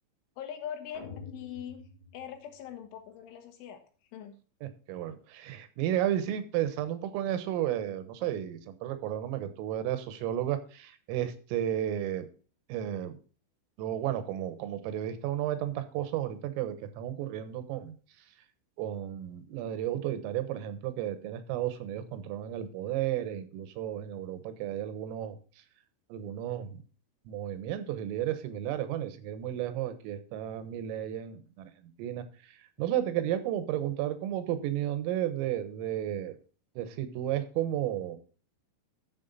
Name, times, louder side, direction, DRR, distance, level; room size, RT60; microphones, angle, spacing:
voice 1, 0.4-1.8 2.1-3.8 4.1-4.4, left 9 dB, 75° left, 6 dB, 3.8 m, -42 dB
sound 1, 0.9-3.1, left 5 dB, 50° left, 1.4 m, -47 dB
voice 2, 4.6-12.3 12.7-13.2 13.8-18.0 18.8-25.4 26.1-26.8 27.3-36.4 36.8-38.2, right 11 dB, 85° right, 11 dB, 3.7 m, -33 dB
11.5 x 7.3 x 4.0 m, 0.38 s
omnidirectional pair, 5.8 m